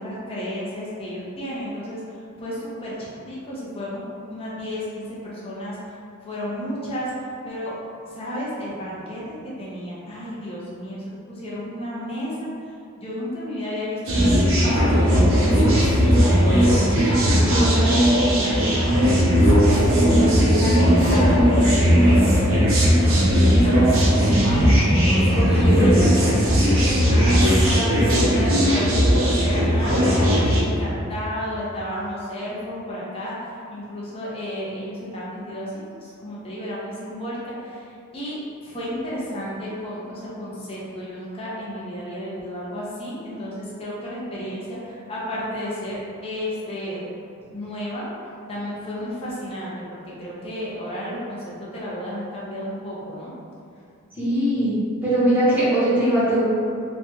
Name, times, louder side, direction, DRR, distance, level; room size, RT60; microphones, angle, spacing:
voice 1, 0.0-5.9 6.2-7.7 8.0-19.2 19.9-24.5 24.9-25.0 25.4-47.0 47.4-48.1 48.5-53.3, equal, 25° left, -7 dB, 0.6 m, -32 dB
sound 1, 14.1-30.6, equal, 80° right, 0.6 m, -17 dB
voice 2, 20.2-20.7 25.3-26.0 54.1-54.8 55.0-56.4, right 1 dB, 10° right, -11 dB, 0.8 m, -21 dB
3.2 x 2.2 x 2.7 m, 2.4 s
head